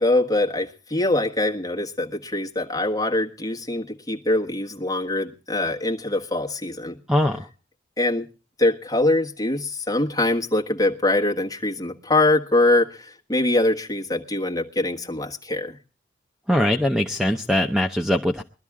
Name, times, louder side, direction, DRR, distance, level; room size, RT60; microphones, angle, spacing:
voice 1, 0.0-7.0 8.0-8.3 8.6-15.8, left 2 dB, 20° left, 0 dB, 1.4 m, -23 dB
voice 2, 7.1-7.5 16.5-18.4, left 1 dB, 5° right, 5 dB, 0.6 m, -21 dB
21.5 x 12.5 x 3.6 m, 0.33 s
head